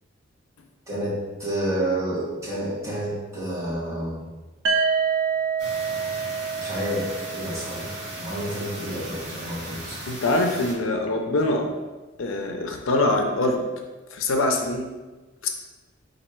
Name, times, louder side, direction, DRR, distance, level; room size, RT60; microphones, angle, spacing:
voice 1, 0.9-4.2 6.6-10.0, right 1 dB, 15° right, -9 dB, 1.3 m, -30 dB
sound 1, 4.6-8.5, right 6 dB, 70° right, 0.4 m, -27 dB
sound 2, 5.6-10.7, right 1 dB, 50° right, 1.2 m, -37 dB
voice 2, 10.1-11.7 12.2-13.7 14.1-14.9 15.4-15.5, left 2 dB, 80° left, 3 dB, 0.5 m, -23 dB
4.1 x 2.6 x 4.5 m, 1.2 s
head